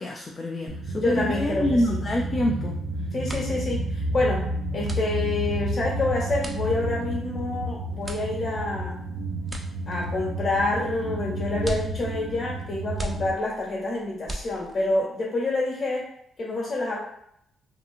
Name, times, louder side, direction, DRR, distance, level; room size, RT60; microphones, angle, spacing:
voice 1, 0.0-2.8, left 1 dB, 40° left, 0 dB, 0.4 m, -26 dB
sound 1, 0.7-13.3, right 1 dB, 85° right, 0.3 m, -31 dB
voice 2, 0.9-2.0 3.1-4.5 4.7-9.1 9.9-16.1 16.4-17.0, left 2 dB, 55° left, -3 dB, 1.3 m, -27 dB
sound 2, 3.2-15.0, right 1 dB, 20° right, 0.5 m, -41 dB
2.9 x 2.4 x 2.5 m, 0.73 s
supercardioid pair, 60°, 0 cm